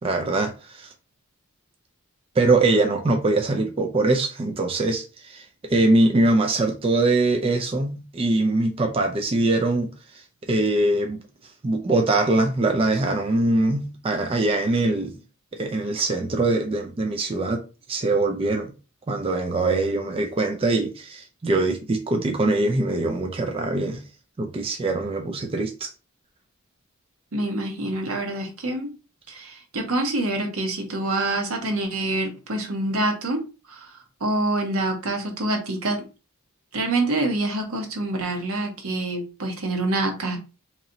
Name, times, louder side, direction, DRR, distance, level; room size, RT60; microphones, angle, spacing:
voice 1, 0.0-0.9 2.4-10.2 10.5-11.2 11.6-15.1 15.5-17.6 17.9-18.7 19.1-24.0 24.4-25.9, right 2 dB, 25° right, 0.4 m, -22 dB
voice 2, 27.3-28.9 29.3-33.4 34.2-36.0 36.7-40.4, right 2 dB, 75° right, 1.0 m, -26 dB
3.0 x 2.7 x 3.9 m
head